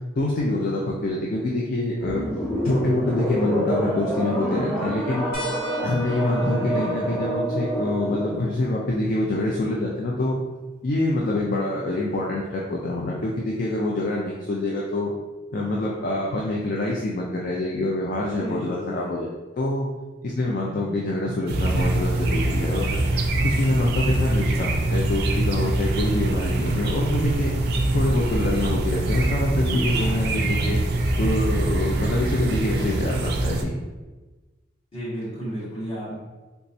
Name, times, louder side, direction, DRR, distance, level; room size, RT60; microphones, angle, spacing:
voice 1, 0.2-2.2 2.6-5.3 5.8-10.4 10.8-15.1 15.5-19.3 19.6-19.9 20.2-23.0 23.4-27.5 27.9-30.8 31.2-33.7, left 2 dB, 50° left, -2 dB, 0.4 m, -26 dB
sound 1, 2.0-8.5, equal, ahead, 1.4 m, -27 dB
sound 2, 5.3-10.4 11.9-12.0 13.7-13.8, equal, 65° left, 0.9 m, -42 dB
voice 2, 6.3-7.2 18.4-19.1 29.9-30.8 34.9-36.2, equal, 30° left, -8 dB, 1.4 m, -33 dB
sound 3, 21.5-33.6, right 2 dB, 55° right, 0.4 m, -24 dB
3.4 x 3.0 x 2.6 m, 1.2 s
head